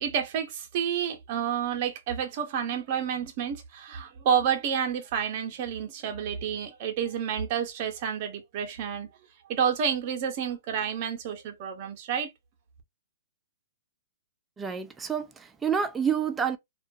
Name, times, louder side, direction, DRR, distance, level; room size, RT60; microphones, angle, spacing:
voice 1, 0.0-9.1 9.5-12.3, right 8 dB, 40° right, 0.7 m, -29 dB
voice 2, 14.6-16.6, right 7 dB, 10° right, 0.3 m, -28 dB
2.4 x 2.2 x 2.5 m
hypercardioid pair, 145°, 0 cm